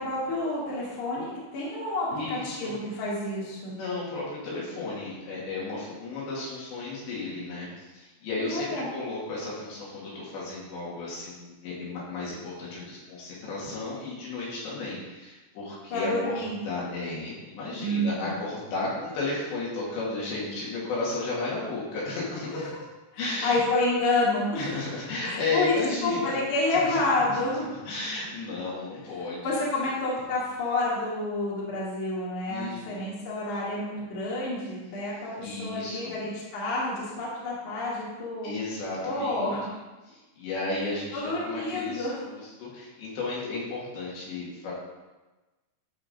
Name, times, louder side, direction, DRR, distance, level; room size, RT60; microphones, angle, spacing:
voice 1, 0.0-3.8 8.5-9.0 15.9-16.6 17.8-18.3 22.5-22.8 23.1-24.8 25.2-25.7 26.0-27.7 29.4-35.3 35.6-38.5 39.0-39.7 41.1-42.2, left 2 dB, 45° left, -6 dB, 3.5 m, -29 dB
voice 2, 2.1-2.7 3.7-22.7 23.2-23.6 24.6-26.4 26.7-27.0 27.3-27.4 27.8-29.5 32.5-33.1 35.4-36.3 38.4-39.5 40.1-44.7, left 3 dB, 70° left, -6 dB, 4.5 m, -34 dB
13.5 x 5.0 x 5.2 m, 1.2 s
omnidirectional pair, 5.4 m